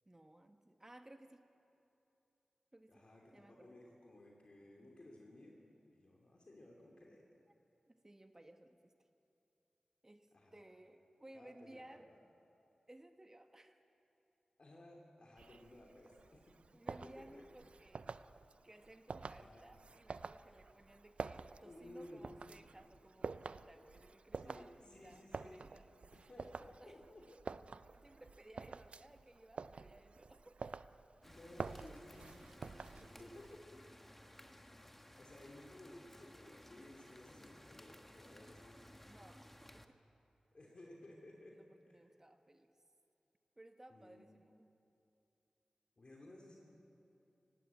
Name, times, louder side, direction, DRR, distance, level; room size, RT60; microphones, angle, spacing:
voice 1, 0.1-1.5 2.7-3.1 3.3-3.8 7.9-8.9 10.0-12.1 12.9-13.8 16.7-18.1 18.6-26.3 26.8-27.0 27.9-30.8 33.0-33.3 39.0-40.1 41.5-42.7 43.6-44.7, right 1 dB, 25° right, 6 dB, 1.2 m, -60 dB
voice 2, 2.9-5.6 5.9-7.3 10.3-10.6 11.3-12.2 14.6-16.5 17.0-17.4 19.3-19.7 21.6-22.3 24.4-25.8 26.1-27.2 31.2-32.8 33.2-33.5 34.7-34.8 35.2-38.9 40.5-41.6 41.9-42.1 43.9-44.2 46.0-46.6, left 1 dB, 50° left, -2 dB, 3.0 m, -57 dB
sound 1, 15.4-33.6, right 4 dB, 70° right, 0.4 m, -49 dB
sound 2, 31.2-39.9, left 1 dB, 10° left, 1.2 m, -59 dB
18.5 x 17.0 x 8.4 m, 2.8 s
wide cardioid pair, 60°, 2 cm